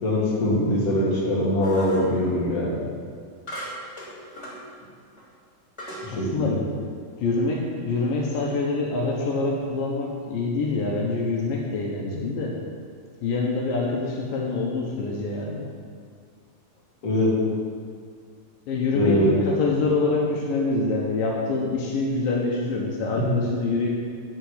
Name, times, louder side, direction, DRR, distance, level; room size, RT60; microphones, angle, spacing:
voice 1, 0.0-2.8 6.0-6.6 17.0-17.4 18.9-19.3 23.2-23.3, left 1 dB, 50° left, -5 dB, 3.4 m, -22 dB
sound 1, 1.6-2.1 3.5-4.6 5.2-5.3 5.8-6.1, equal, 10° left, 2.4 m, -37 dB
voice 2, 6.1-6.6 7.2-12.6 13.2-15.7 18.7-23.9, left 3 dB, 85° left, -2 dB, 3.0 m, -25 dB
13.0 x 4.7 x 8.6 m, 2.1 s
omnidirectional pair, 3.9 m